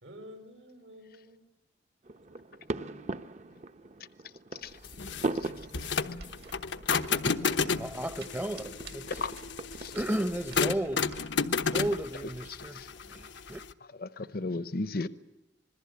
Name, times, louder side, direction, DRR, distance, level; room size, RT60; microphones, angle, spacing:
voice 1, 0.0-1.4 2.3-3.1 5.4-5.8, equal, 85° right, 4.8 m, -51 dB
sound 1, 2.0-10.7, right 2 dB, 40° right, 0.8 m, -40 dB
sound 2, 4.8-13.7, left 5 dB, 90° left, 1.0 m, -32 dB
sound 3, 5.4-12.7, right 3 dB, 60° right, 2.1 m, -52 dB
voice 2, 7.7-9.3 9.9-11.3 11.6-13.6, right 1 dB, 10° right, 0.8 m, -34 dB
voice 3, 12.5-12.9 14.0-15.1, left 3 dB, 55° left, 0.8 m, -35 dB
26.5 x 21.0 x 8.3 m
head